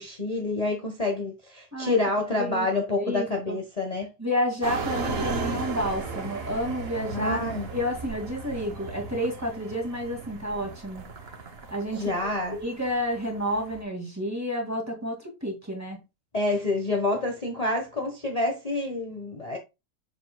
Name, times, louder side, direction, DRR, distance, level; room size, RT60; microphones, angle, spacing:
voice 1, 0.0-4.1 7.1-7.7 11.9-12.6 16.3-19.6, left 2 dB, 25° left, 1.4 m, -28 dB
voice 2, 2.4-2.7 2.9-3.6 4.2-7.4 7.7-11.1 11.7-12.1 12.6-16.0, equal, 10° right, 2.4 m, -30 dB
sound 1, 4.6-13.8, right 4 dB, 40° right, 1.3 m, -36 dB
7.2 x 6.9 x 2.3 m
omnidirectional pair, 1.7 m